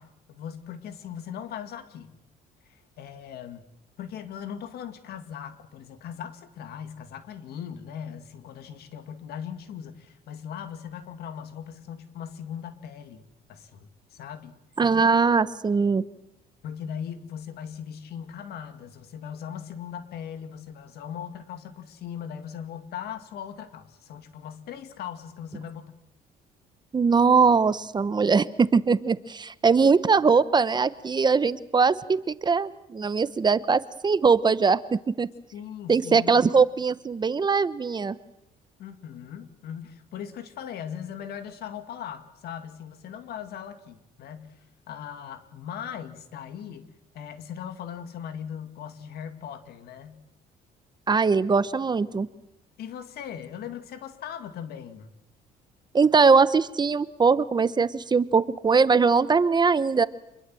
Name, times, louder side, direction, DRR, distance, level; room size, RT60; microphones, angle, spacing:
voice 1, 0.0-2.1 2.7-3.6 4.0-13.2 13.5-14.5 16.6-25.9 35.5-36.5 38.8-44.6 44.9-46.9 47.1-50.2 52.8-55.1, left 8 dB, 70° left, 9 dB, 2.3 m, -39 dB
voice 2, 14.8-16.0 26.9-35.3 35.9-38.1 51.1-52.3 55.9-60.1, right 5 dB, 25° right, 15 dB, 0.8 m, -21 dB
26.5 x 22.0 x 7.7 m, 0.85 s
cardioid pair, 110°, 17 cm